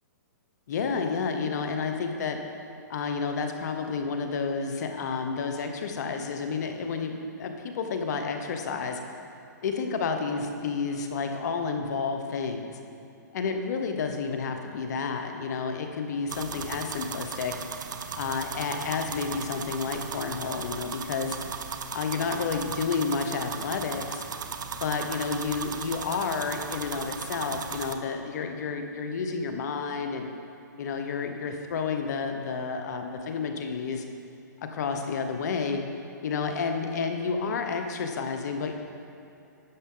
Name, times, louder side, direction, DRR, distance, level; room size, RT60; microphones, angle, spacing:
voice 1, 0.7-2.4 2.9-9.0 9.6-12.8 13.3-17.5 18.1-21.4 21.9-24.2 24.7-30.3 30.8-34.0 34.7-35.8 36.2-38.7, left 5 dB, 60° left, 5 dB, 0.9 m, -30 dB
sound 1, 16.3-27.9, right 6 dB, 75° right, 0.6 m, -37 dB
11.0 x 6.6 x 3.8 m, 2.6 s
hypercardioid pair, 140°, 10 cm